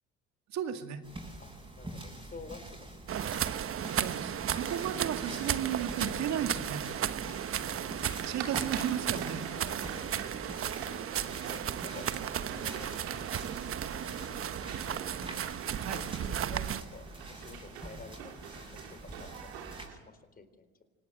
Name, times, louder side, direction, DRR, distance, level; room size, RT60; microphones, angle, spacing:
voice 1, 0.5-1.0 3.9-6.8 8.3-9.4 15.8-16.0, right 9 dB, 60° right, 7 dB, 2.2 m, -34 dB
sound 1, 1.0-19.9, right 1 dB, 15° right, 7.9 m, -46 dB
voice 2, 1.8-3.3 7.3-7.4 7.6-8.4 9.5-10.3 10.9-11.0 11.5-13.1 14.0-15.0 15.9-19.5 19.8-20.8, left 4 dB, 30° left, 11 dB, 4.1 m, -51 dB
sound 2, 3.1-16.8, right 9 dB, 45° right, 1.1 m, -35 dB
sound 3, 6.9-20.0, right 8 dB, 85° right, 3.1 m, -46 dB
26.0 x 19.0 x 7.8 m, 1.2 s
supercardioid pair, 75°, 31 cm